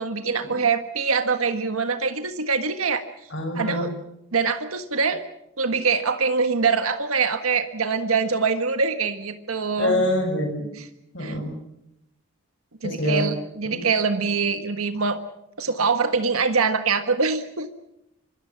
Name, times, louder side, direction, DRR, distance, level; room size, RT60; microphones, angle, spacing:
voice 1, 0.0-3.0 3.5-3.9 4.3-5.2 5.6-10.1 10.8-10.9 11.2-11.4 12.8-15.2 15.6-17.7, right 5 dB, 90° right, 8 dB, 1.6 m, -24 dB
voice 2, 3.3-3.9 9.8-10.6 11.1-11.5 12.8-13.3 13.6-13.8, left 1 dB, 60° left, 5 dB, 6.7 m, -25 dB
26.0 x 22.5 x 6.0 m, 0.81 s
head